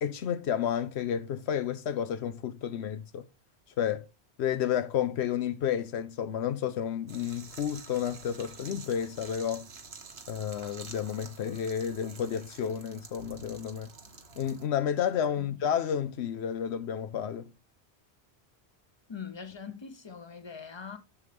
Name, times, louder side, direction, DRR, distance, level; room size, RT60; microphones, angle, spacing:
voice 1, 0.0-3.2 3.8-4.0 4.4-9.7 10.3-13.9 14.4-17.5, left 9 dB, 80° left, 0.9 m, -31 dB
sound 1, 7.1-14.7, right 4 dB, 70° right, 1.4 m, -48 dB
voice 2, 19.1-21.0, left 6 dB, 25° left, 0.8 m, -42 dB
7.5 x 6.6 x 3.4 m
omnidirectional pair, 1.1 m